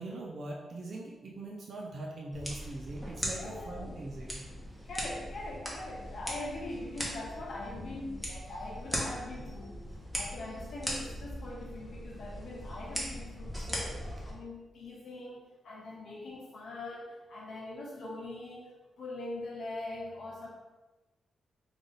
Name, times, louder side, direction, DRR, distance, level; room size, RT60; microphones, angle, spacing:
voice 1, 0.0-4.4, right 2 dB, 60° right, -2 dB, 0.5 m, -42 dB
sound 1, 2.3-14.3, equal, 10° right, 1.0 m, -40 dB
voice 2, 3.3-3.9 4.8-9.8 10.1-18.7 19.0-20.5, left 2 dB, 75° left, -4 dB, 0.8 m, -42 dB
3.4 x 2.5 x 3.8 m, 1.1 s
cardioid pair, 85°, 0 cm